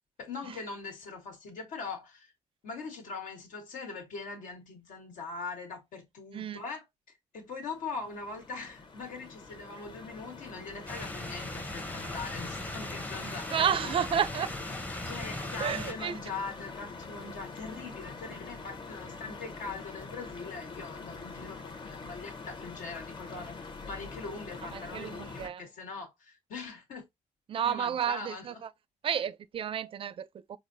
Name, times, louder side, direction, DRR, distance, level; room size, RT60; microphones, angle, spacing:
voice 1, 0.2-2.3 2.6-13.9 15.0-27.0 27.6-28.6, left 4 dB, 80° left, 1.4 m, -42 dB
sound 1, 7.5-25.5, left 4 dB, 35° left, 0.8 m, -44 dB
sound 2, 10.9-15.9, left 1 dB, 10° left, 0.6 m, -39 dB
voice 2, 13.5-14.5 15.6-16.2 24.7-25.6 27.5-28.7 29.0-30.6, right 8 dB, 45° right, 0.4 m, -31 dB
4.8 x 2.0 x 2.6 m
cardioid pair, 95°, 13 cm